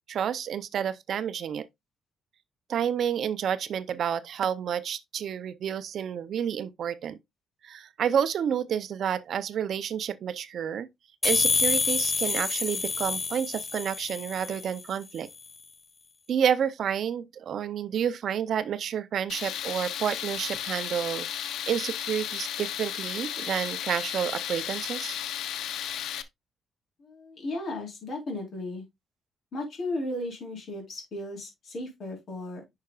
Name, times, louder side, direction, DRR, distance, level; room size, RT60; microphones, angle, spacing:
voice 1, 0.1-1.7 2.7-7.2 7.6-10.9 11.2-15.3 16.3-25.2, right 8 dB, 60° right, 0.5 m, -30 dB
sound 1, 11.2-14.8, left 4 dB, 25° left, 0.7 m, -27 dB
Tools, 19.3-26.2, left 10 dB, 80° left, 0.7 m, -34 dB
voice 2, 27.0-28.8 29.5-32.6, left 1 dB, 50° left, 3.9 m, -35 dB
9.6 x 5.6 x 2.3 m
cardioid pair, 120°, 0 cm